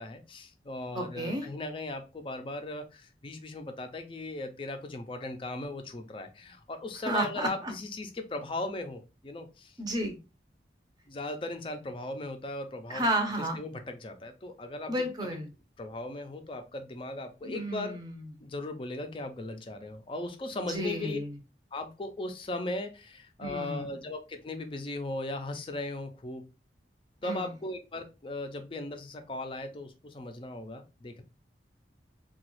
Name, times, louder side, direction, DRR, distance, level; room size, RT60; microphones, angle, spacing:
voice 1, 0.0-9.8 11.1-13.0 13.5-14.9 15.8-18.0 18.4-21.2 21.7-26.4 27.2-31.2, left 2 dB, 30° left, 7 dB, 0.4 m, -38 dB
voice 2, 0.9-1.5 7.0-7.7 9.8-10.2 12.9-13.6 14.9-15.5 17.4-18.2 20.7-21.4 23.4-23.9 27.2-27.5, right 1 dB, 20° right, 4 dB, 0.6 m, -32 dB
2.9 x 2.3 x 3.0 m, 0.29 s
head